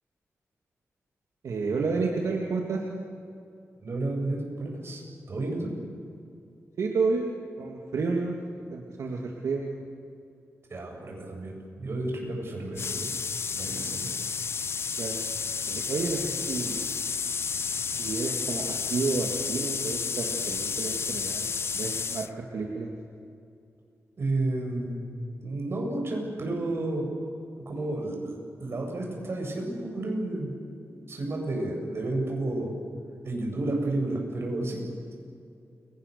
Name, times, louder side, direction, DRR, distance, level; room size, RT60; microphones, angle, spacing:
voice 1, 1.4-2.8 6.8-7.3 7.6-8.4 8.7-9.7 15.0-15.1 15.7-16.8 18.0-22.3 22.5-22.9, right 4 dB, 80° right, 0 dB, 2.4 m, -30 dB
voice 2, 3.8-5.0 5.3-5.7 10.7-13.1 13.5-14.1 24.2-25.0 25.4-27.1 27.7-30.5 30.9-32.7 33.2-34.8, right 2 dB, 55° right, 0 dB, 7.8 m, -31 dB
sound 1, 12.7-22.3, left 5 dB, 55° left, 0.7 m, -31 dB
29.5 x 24.5 x 6.9 m, 2.5 s
wide cardioid pair, 100°, 5 cm